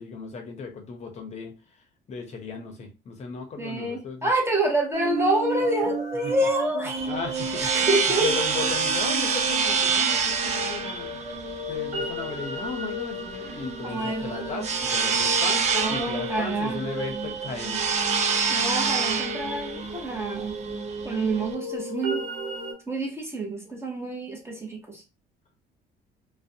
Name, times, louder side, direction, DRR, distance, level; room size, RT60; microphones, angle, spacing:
voice 1, 0.0-1.5 2.1-4.3 6.2-6.3 7.1-11.2 11.7-17.8, left 4 dB, 40° left, 3 dB, 0.7 m, -36 dB
voice 2, 3.6-7.1 7.6-8.3 13.8-14.7 15.7-16.8 18.5-20.6 21.0-22.3 22.9-25.0, right 1 dB, 15° right, 1 dB, 0.8 m, -27 dB
sound 1, 4.9-22.7, right 2 dB, 85° right, 0.8 m, -34 dB
sound 2, 7.0-21.5, right 5 dB, 40° right, 0.5 m, -27 dB
2.5 x 2.1 x 2.6 m, 0.28 s
cardioid pair, 110°, 17 cm